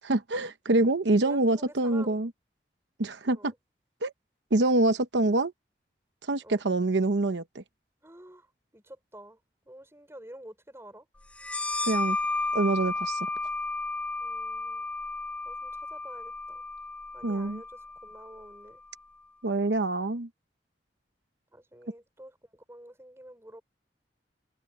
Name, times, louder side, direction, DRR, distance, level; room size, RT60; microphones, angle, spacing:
voice 1, 0.0-2.3 3.0-3.5 4.0-4.1 4.5-5.5 6.3-7.6 11.9-12.2 12.5-13.3 17.2-17.6 19.4-20.3, right 2 dB, 90° right, 0.9 m, -25 dB
voice 2, 1.2-2.2 3.3-3.6 6.4-6.6 8.0-8.5 8.7-9.4 9.6-11.1 14.2-14.9 15.4-16.6 17.1-18.8 21.5-23.6, right 1 dB, 15° right, 5.0 m, -49 dB
sound 1, 11.4-18.7, left 3 dB, 5° left, 0.5 m, -33 dB
head